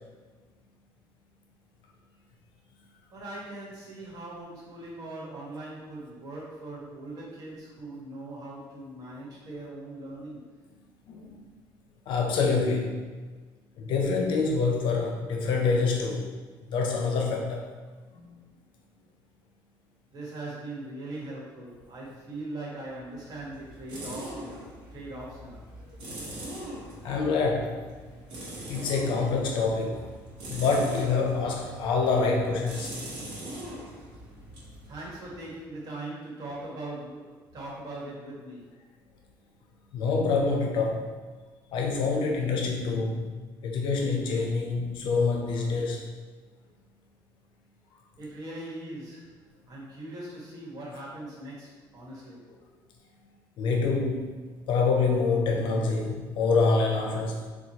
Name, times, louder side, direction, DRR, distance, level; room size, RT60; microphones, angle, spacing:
voice 1, 3.1-10.6 20.1-25.7 34.8-38.8 48.2-52.5, right 2 dB, 45° right, -5 dB, 1.2 m, -40 dB
voice 2, 12.1-13.0 13.8-16.3 16.7-17.7 18.1-18.4 27.0-27.9 28.7-30.1 30.5-33.0 39.9-41.1 41.7-43.3 43.6-46.1 53.6-54.4 54.7-57.5, left 4 dB, 70° left, 1 dB, 0.6 m, -26 dB
sound 1, 22.9-35.6, right 1 dB, 75° right, 0.9 m, -42 dB
4.3 x 2.2 x 2.8 m, 1.4 s
cardioid pair, 115°, 9 cm